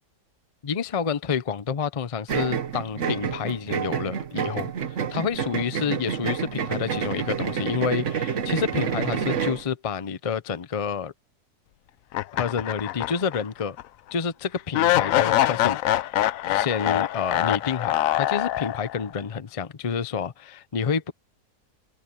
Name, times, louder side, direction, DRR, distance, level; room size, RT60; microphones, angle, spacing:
voice 1, 0.6-4.7 5.1-11.1 12.3-13.8 14.1-21.1, left 6 dB, 40° left, 0.4 m, -29 dB
sound 1, 2.3-9.6, right 7 dB, 50° right, 1.3 m, -28 dB
sound 2, 12.1-13.4 13.8-13.9 14.7-19.0, left 13 dB, 70° left, 0.9 m, -24 dB
omnidirectional pair, 1.7 m